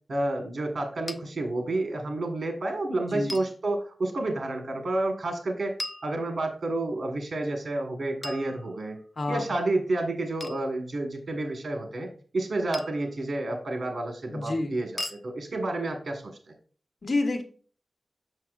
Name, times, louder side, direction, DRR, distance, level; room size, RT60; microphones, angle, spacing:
voice 1, 0.1-5.7 6.0-9.0 9.3-16.5, right 2 dB, 75° right, 2 dB, 1.4 m, -30 dB
sound 1, 1.1-1.2 3.3-3.5 5.8-6.7 8.2-9.1 10.4-10.7 12.7-13.1 15.0-15.2, left 1 dB, 25° left, 0.5 m, -38 dB
voice 2, 9.2-9.5 14.3-14.7 17.0-17.4, left 2 dB, 65° left, 5 dB, 1.2 m, -28 dB
7.2 x 6.5 x 2.4 m, 0.41 s
wide cardioid pair, 75°, 0 cm